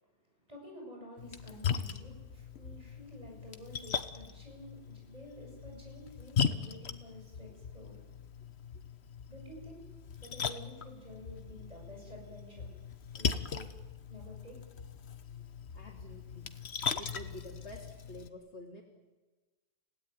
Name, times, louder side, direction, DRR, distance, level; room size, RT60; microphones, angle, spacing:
voice 1, 0.5-8.0 9.3-9.8 10.2-12.7 13.1-13.6 14.1-14.6 15.3-15.4, equal, 35° right, 0 dB, 8.1 m, -51 dB
Splash splatter, 1.2-18.3, left 6 dB, 70° left, 1.4 m, -39 dB
voice 2, 15.7-16.5 17.0-18.8, left 1 dB, 85° left, -2 dB, 3.2 m, -48 dB
30.0 x 17.0 x 9.6 m, 1.2 s
omnidirectional pair, 1.1 m